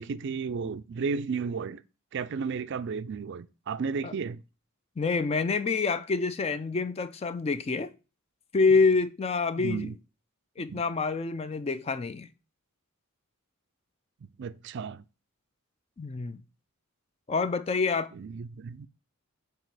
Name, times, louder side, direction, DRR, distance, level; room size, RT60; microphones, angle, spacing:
voice 1, 0.0-1.8 2.1-4.4 9.6-9.9 10.7-10.8 14.2-15.0 18.1-18.9, right 5 dB, 55° right, 0.3 m, -33 dB
voice 2, 5.0-7.9 8.5-9.9 10.6-12.3 16.0-16.4 17.3-18.1, left 4 dB, 30° left, 0.3 m, -27 dB
7.4 x 2.9 x 4.7 m
head